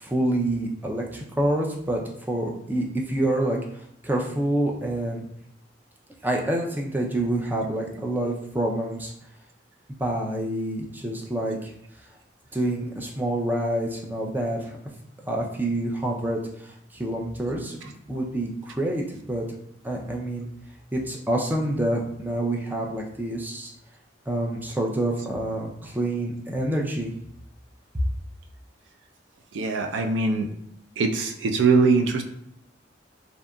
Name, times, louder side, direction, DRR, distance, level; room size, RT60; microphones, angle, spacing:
voice 1, 0.0-2.0 2.3-5.3 6.2-9.1 10.0-11.7 12.5-14.7 15.2-19.5 19.8-20.5 20.9-23.7 24.3-27.1, right 1 dB, 10° right, -1 dB, 0.3 m, -27 dB
voice 2, 29.5-30.5 31.0-32.2, right 4 dB, 80° right, 4 dB, 0.4 m, -22 dB
2.7 x 2.4 x 2.2 m, 0.72 s
head